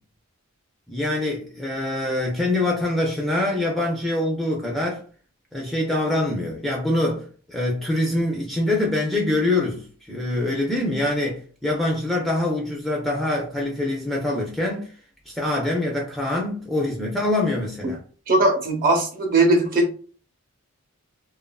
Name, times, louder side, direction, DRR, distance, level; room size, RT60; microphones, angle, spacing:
voice 1, 0.9-5.0 5.5-14.9 15.3-18.0, left 1 dB, ahead, 0.3 m, -24 dB
voice 2, 18.3-19.9, right 2 dB, 40° right, 0.7 m, -19 dB
3.0 x 2.4 x 2.2 m
head